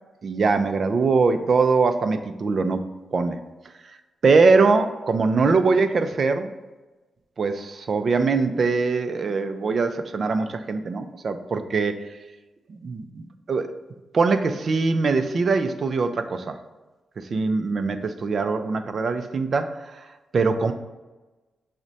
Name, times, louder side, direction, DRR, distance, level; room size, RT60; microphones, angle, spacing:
voice 1, 0.2-2.9 3.1-3.4 4.2-6.5 7.4-12.2 12.7-13.7 14.1-16.6 17.2-20.1 20.3-20.7, right 4 dB, 40° right, 8 dB, 0.3 m, -22 dB
6.0 x 2.1 x 4.0 m, 1.1 s
wide cardioid pair, 170°, 0 cm